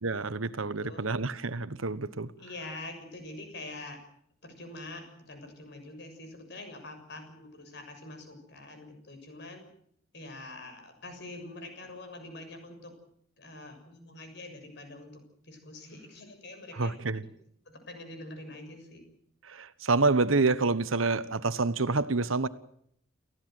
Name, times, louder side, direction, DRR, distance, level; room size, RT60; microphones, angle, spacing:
voice 1, 0.0-2.3 16.8-17.2 19.4-22.5, right 3 dB, 85° right, 1.2 m, -28 dB
voice 2, 2.4-4.0 4.4-9.6 10.1-12.9 13.4-17.0 17.6-19.0, left 2 dB, 60° left, 6.9 m, -45 dB
29.0 x 15.5 x 7.7 m
head